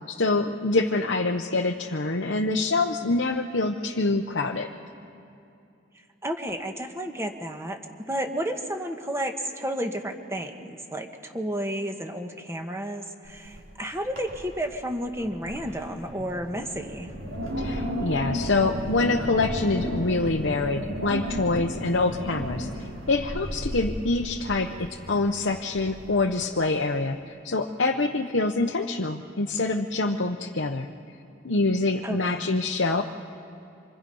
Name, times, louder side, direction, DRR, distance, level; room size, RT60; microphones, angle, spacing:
voice 1, 0.1-4.7 17.6-30.9 31.4-33.0, left 3 dB, 65° left, 2 dB, 0.9 m, -25 dB
voice 2, 6.2-7.8 8.1-17.1 32.0-32.5, equal, 15° right, 4 dB, 1.4 m, -32 dB
Wind, 13.2-13.7 14.0-14.6 15.0-26.4, equal, 85° right, 4.6 m, -34 dB
27.0 x 26.0 x 5.5 m, 2.7 s
head